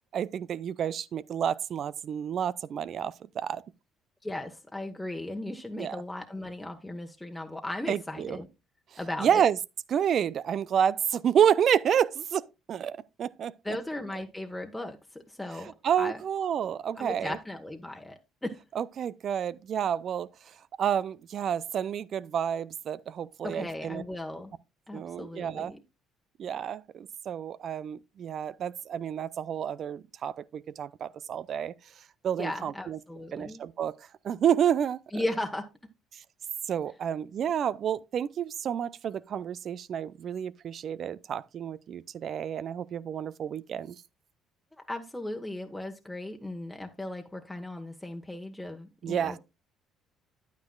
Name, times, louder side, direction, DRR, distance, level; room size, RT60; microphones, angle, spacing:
voice 1, 0.1-3.6 5.8-6.0 7.9-8.4 9.2-9.6 9.9-12.4 12.7-13.5 15.8-17.4 18.8-20.3 20.8-24.0 24.9-25.7 26.4-31.7 32.2-33.0 33.3-33.9 34.2-35.0 36.7-44.0 49.0-49.4, right 9 dB, 55° right, 0.5 m, -29 dB
voice 2, 4.2-8.5 9.0-9.4 13.6-16.2 17.0-18.6 23.4-24.5 24.9-25.8 32.4-33.6 35.1-35.7 44.9-49.4, left 1 dB, 10° left, 1.3 m, -37 dB
9.8 x 9.3 x 2.3 m
hypercardioid pair, 55°, 0 cm